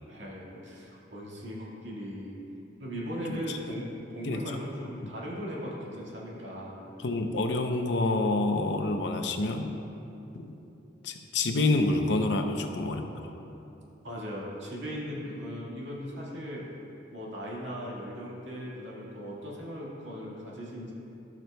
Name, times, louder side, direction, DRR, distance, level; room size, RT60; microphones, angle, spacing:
voice 1, 0.1-2.4 2.8-6.8 14.0-16.7 17.1-20.9, equal, 80° right, -5 dB, 1.8 m, -38 dB
voice 2, 7.0-9.7 10.3-10.6 11.0-13.3, left 2 dB, 65° left, 5 dB, 0.6 m, -28 dB
14.0 x 6.0 x 2.2 m, 2.9 s
head